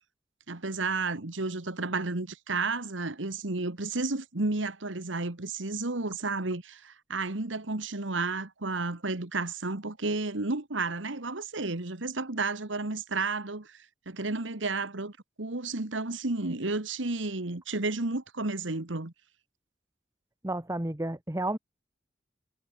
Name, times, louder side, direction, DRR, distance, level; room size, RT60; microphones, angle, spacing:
voice 1, 0.5-19.1, right 3 dB, 90° right, 1.8 m, -32 dB
voice 2, 20.4-21.6, right 1 dB, 15° right, 1.4 m, -31 dB
head